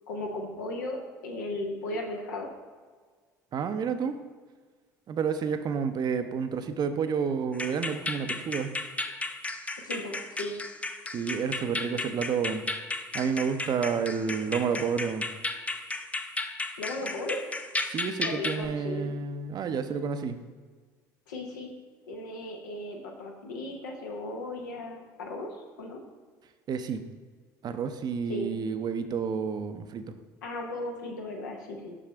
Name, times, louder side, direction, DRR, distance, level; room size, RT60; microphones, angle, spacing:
voice 1, 0.1-2.5 9.8-10.5 16.8-17.4 18.2-19.1 21.3-21.7 22.1-25.5 25.8-26.0 28.3-28.5 30.4-32.0, left 2 dB, 85° left, 1 dB, 0.9 m, -36 dB
voice 2, 3.5-4.2 5.1-8.7 11.1-12.6 13.1-15.3 17.9-20.4 26.7-27.0 27.6-30.1, right 6 dB, 45° right, 9 dB, 0.5 m, -30 dB
sound 1, 7.5-18.7, left 2 dB, 15° left, 0.4 m, -35 dB
6.1 x 5.7 x 3.3 m, 1.5 s
hypercardioid pair, 65°, 10 cm